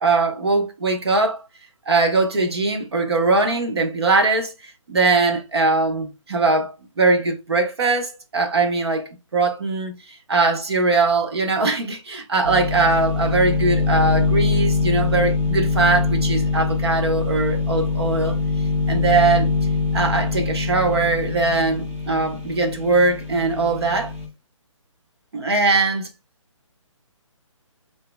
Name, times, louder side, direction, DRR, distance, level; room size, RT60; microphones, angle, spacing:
voice 1, 0.0-1.4 1.9-10.0 10.3-18.4 18.9-19.5 19.9-24.1 25.3-26.1, right 3 dB, 50° right, 1.2 m, -21 dB
sound 1, 12.4-24.3, left 4 dB, 20° right, 1.4 m, -23 dB
7.4 x 2.9 x 2.2 m
hypercardioid pair, 180°, 17 cm